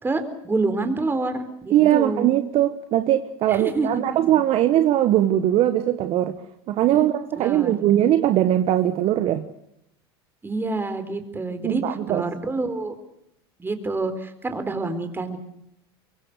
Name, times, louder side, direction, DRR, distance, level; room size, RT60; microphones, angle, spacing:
voice 1, 0.0-2.3 3.5-4.3 6.9-7.1 7.3-7.7 10.4-11.8 12.1-12.9 13.6-15.4, right 3 dB, 15° right, 9 dB, 4.1 m, -27 dB
voice 2, 1.7-6.3 6.7-9.4 11.6-12.2, right 12 dB, 50° right, 10 dB, 1.4 m, -20 dB
24.0 x 23.0 x 6.7 m, 0.78 s
hypercardioid pair, 90°, 13 cm